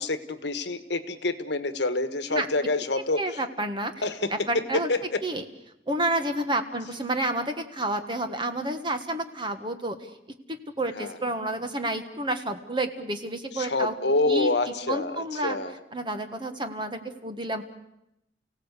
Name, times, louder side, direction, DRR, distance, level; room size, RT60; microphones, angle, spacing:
voice 1, 0.0-3.4 4.0-5.2 11.0-11.2 13.5-15.8, left 2 dB, 65° left, 11 dB, 1.5 m, -27 dB
voice 2, 3.2-3.9 4.3-4.9 5.2-5.4 5.9-10.0 10.5-13.9 14.3-14.5 14.9-15.6 15.9-17.6, right 1 dB, 25° right, 8 dB, 1.6 m, -30 dB
29.5 x 17.0 x 8.3 m, 0.85 s
head